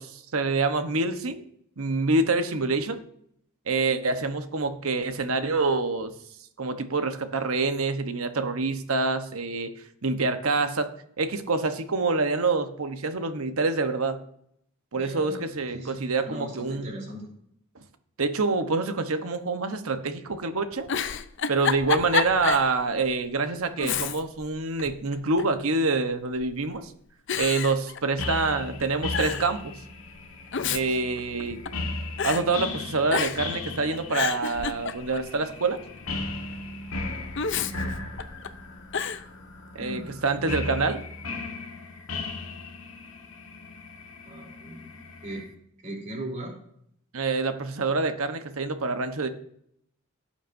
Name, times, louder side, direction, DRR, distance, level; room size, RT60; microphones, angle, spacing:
voice 1, 0.0-1.4 1.8-3.0 3.7-6.1 6.6-9.7 10.0-10.9 11.2-14.2 14.9-17.0 18.2-20.9 21.5-26.9 27.4-29.7 30.7-31.6 32.2-35.8 39.7-41.0 47.1-49.3, right 3 dB, 80° right, 8 dB, 1.0 m, -26 dB
voice 2, 14.9-17.3 37.6-38.1 39.8-40.3 44.3-45.5 45.8-46.5, right 1 dB, 35° right, -1 dB, 3.5 m, -39 dB
Giggle, 20.7-22.7 23.1-23.2 23.8-24.5 24.8-25.6 26.4-26.8 27.3-28.5 28.8-28.9 29.1-29.5 30.3-31.9 32.2-32.4 33.1-33.6 33.9-35.3 37.4-38.5 38.9-39.2, left 7 dB, 60° left, 0.6 m, -29 dB
sound 1, 28.2-45.5, left 3 dB, 80° left, 1.5 m, -37 dB
17.0 x 8.5 x 2.7 m, 0.69 s
head